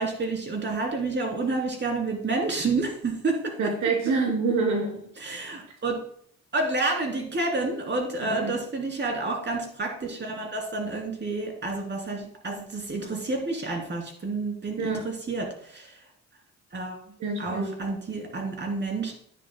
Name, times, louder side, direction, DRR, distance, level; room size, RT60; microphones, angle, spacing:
voice 1, 0.0-3.5 5.2-5.9 6.5-15.9 16.7-16.9 17.4-19.1, right 3 dB, 35° right, 1 dB, 3.2 m, -29 dB
voice 2, 3.6-5.0 8.2-8.5 14.8-15.0 17.2-17.7, right 4 dB, 80° right, -1 dB, 3.1 m, -26 dB
10.5 x 10.0 x 2.2 m, 0.62 s
cardioid pair, 90°, 30 cm